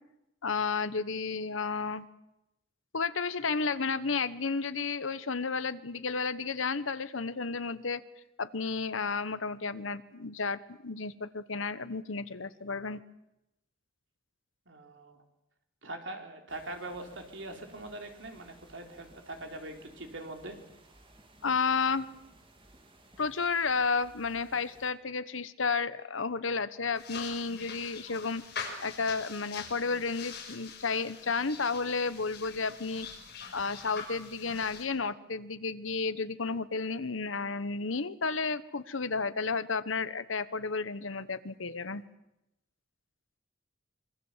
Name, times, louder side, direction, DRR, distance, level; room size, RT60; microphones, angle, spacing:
voice 1, 0.4-2.1 2.9-8.0 8.4-13.0 21.4-22.1 23.2-28.4 28.8-33.1 33.5-42.0, left 4 dB, 85° left, 13 dB, 1.2 m, -32 dB
voice 2, 14.7-15.2 15.8-20.6, right 2 dB, 70° right, 4 dB, 3.7 m, -42 dB
sound 1, 16.5-24.9, right 1 dB, 25° right, 2.6 m, -58 dB
sound 2, 27.0-34.8, left 5 dB, 55° left, 6.0 m, -44 dB
25.5 x 23.5 x 7.4 m, 0.90 s
head